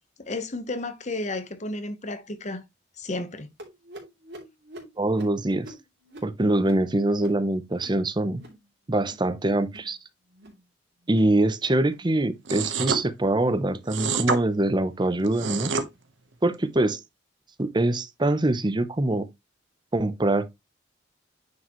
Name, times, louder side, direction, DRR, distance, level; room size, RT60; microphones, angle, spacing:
voice 1, 0.2-2.6 3.0-3.5, left 2 dB, 40° left, 1.0 m, -32 dB
sound 1, 3.6-8.6 8.9-9.3 9.6-10.0 10.3-10.6 11.0-11.4 11.8-12.1 12.5-12.8 13.3-13.6 14.2-14.4 15.0-15.2 15.9-16.0 16.8-16.9, right 1 dB, 60° right, 2.8 m, -48 dB
voice 2, 5.0-5.7 6.2-8.4 8.9-10.0 11.1-15.7 16.4-17.0 17.6-19.3 19.9-20.5, right 1 dB, 25° right, 0.7 m, -24 dB
sound 2, 12.5-13.0 13.9-14.4 15.2-15.9, right 5 dB, 80° right, 1.1 m, -27 dB
9.4 x 4.7 x 3.0 m
head